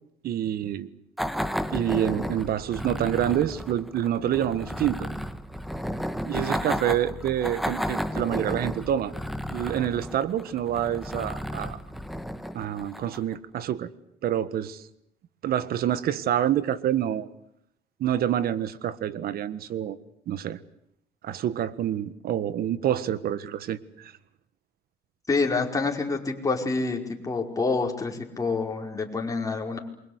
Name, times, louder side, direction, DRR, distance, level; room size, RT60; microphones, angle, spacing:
voice 1, 0.2-0.9 1.7-5.1 6.3-9.1 9.5-11.8 12.5-13.9 14.2-14.8 15.4-17.3 18.0-20.0 20.3-20.6 21.2-24.1, right 10 dB, 65° right, 16 dB, 1.6 m, -27 dB
sound 1, 1.2-13.3, equal, ahead, 1.6 m, -33 dB
voice 2, 25.3-29.8, left 4 dB, 20° left, 1 dB, 5.1 m, -27 dB
28.0 x 23.5 x 8.2 m, 0.77 s
cardioid pair, 110°, 17 cm